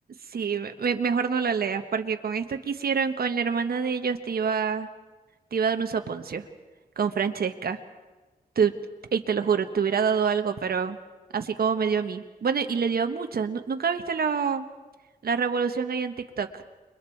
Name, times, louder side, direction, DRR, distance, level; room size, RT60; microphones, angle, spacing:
voice 1, 0.3-4.9 5.5-6.5 7.0-7.8 8.6-8.7 9.1-11.0 11.3-14.7 15.2-16.6, right 6 dB, 75° right, 7 dB, 1.2 m, -26 dB
29.0 x 22.5 x 4.6 m, 1.2 s
wide cardioid pair, 105°, 16 cm